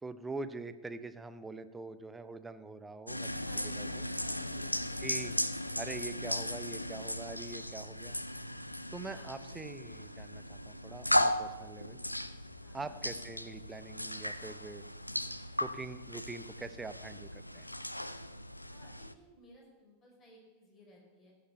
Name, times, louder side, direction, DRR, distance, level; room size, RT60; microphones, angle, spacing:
voice 1, 0.0-3.3 3.6-4.0 5.0-5.3 5.8-8.2 8.9-12.0 12.7-14.8 15.6-17.7, right 3 dB, 10° right, 12 dB, 0.5 m, -44 dB
sound 1, 3.1-19.1, left 1 dB, 85° left, 0.4 m, -37 dB
voice 2, 3.3-5.1 9.1-9.4 12.6-12.9 18.7-21.3, equal, 30° left, -2 dB, 4.4 m, -58 dB
15.0 x 6.8 x 5.4 m, 1.2 s
figure-of-eight pair, 90°, 0 cm